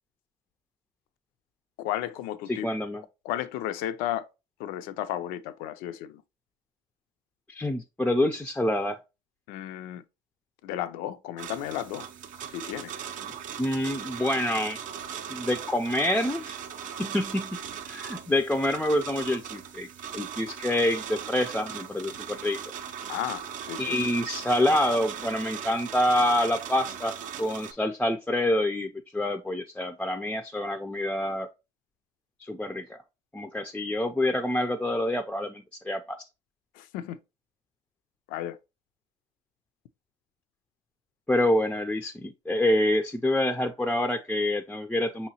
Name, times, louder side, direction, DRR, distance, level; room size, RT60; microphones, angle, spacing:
voice 1, 1.8-2.7 3.2-4.3 4.6-6.2 9.5-10.0 10.6-12.1 12.5-13.0 23.1-24.1 36.7-37.2 38.3-38.6, left 12 dB, 80° left, 0.4 m, -33 dB
voice 2, 2.5-3.0 7.5-9.0 13.6-14.8 15.3-16.6 17.0-17.6 17.9-19.9 20.1-22.6 23.8-27.1 27.4-31.5 32.4-33.0 33.3-36.2 41.3-45.3, left 1 dB, 10° left, 0.3 m, -27 dB
sound 1, 11.4-27.7, right 8 dB, 60° right, 0.5 m, -39 dB
5.4 x 2.8 x 2.8 m
supercardioid pair, 90°, 15 cm